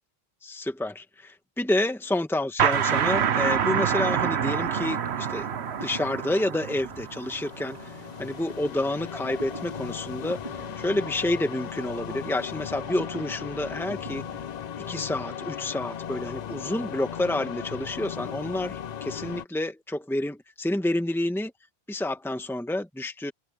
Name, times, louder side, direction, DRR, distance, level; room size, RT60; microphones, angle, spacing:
voice 1, 0.4-5.5 5.8-14.2 14.9-21.5 21.9-23.3, left 1 dB, ahead, 1.5 m, -29 dB
sound 1, 2.6-8.0, right 8 dB, 85° right, 1.1 m, -27 dB
sound 2, 4.8-15.3, right 2 dB, 30° right, 3.7 m, -46 dB
sound 3, 6.9-19.5, left 8 dB, 50° left, 0.6 m, -37 dB
omnidirectional pair, 1.1 m